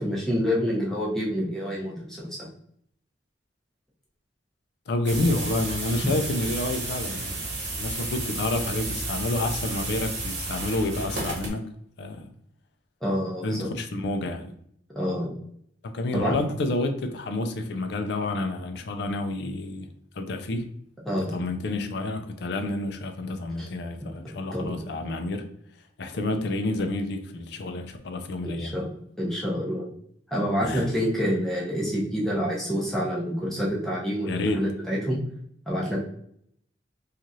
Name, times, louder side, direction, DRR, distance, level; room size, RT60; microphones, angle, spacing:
voice 1, 0.0-2.4 13.0-13.7 14.9-15.3 16.1-16.3 21.1-21.4 23.6-23.7 24.5-24.8 28.4-28.9 29.2-29.8 30.3-35.2 35.7-36.0, equal, ahead, -5 dB, 0.6 m, -27 dB
voice 2, 4.9-11.6 12.0-12.3 13.4-14.5 15.8-19.9 20.2-20.7 21.3-25.4 26.0-28.7 30.6-30.9 34.3-34.6, left 2 dB, 60° left, 6 dB, 0.4 m, -29 dB
sound 1, 5.0-11.5, right 2 dB, 60° right, 1.0 m, -32 dB
3.0 x 2.4 x 2.6 m, 0.68 s
head